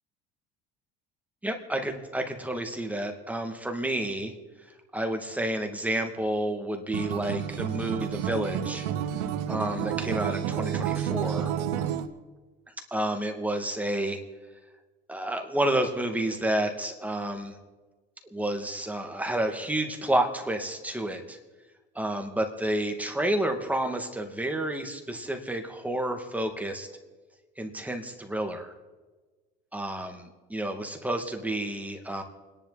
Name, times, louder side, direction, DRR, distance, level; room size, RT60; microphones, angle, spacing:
voice 1, 1.4-4.3 4.6-4.7 4.9-8.9 9.5-11.5 12.9-14.2 15.1-17.6 18.3-21.4 21.9-26.9 27.6-28.7 29.7-32.2, right 1 dB, 5° right, 4 dB, 2.4 m, -30 dB
Acoustic guitar, 6.9-12.1, right 9 dB, 85° right, 1.1 m, -30 dB
28.5 x 11.0 x 4.2 m, 1.3 s
supercardioid pair, 95°, 21 cm